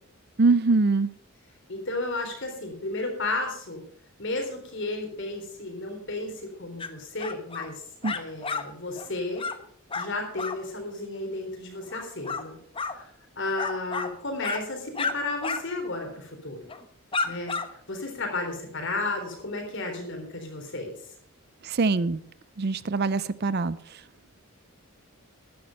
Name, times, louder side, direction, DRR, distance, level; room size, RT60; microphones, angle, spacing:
voice 1, 0.4-1.1 8.0-8.1 21.6-22.2 22.6-23.8, right 3 dB, 50° right, 17 dB, 0.5 m, -23 dB
voice 2, 1.7-3.8 4.2-7.8 8.1-9.4 9.9-12.6 12.9-16.7 17.2-17.6 17.9-20.9, left 2 dB, 55° left, 3 dB, 3.8 m, -33 dB
sound 1, 6.8-6.9 7.2-7.7 8.0-8.6 9.0-9.1 9.3-9.6 9.9-10.1 10.4-10.6 11.9-12.4 12.7-13.0 13.6-14.1 14.4-14.6 14.9-15.1 15.4-15.6 15.9-16.1 16.7-16.8 17.1-17.7, left 4 dB, 25° left, 1.0 m, -31 dB
13.0 x 10.5 x 5.4 m, 0.64 s
head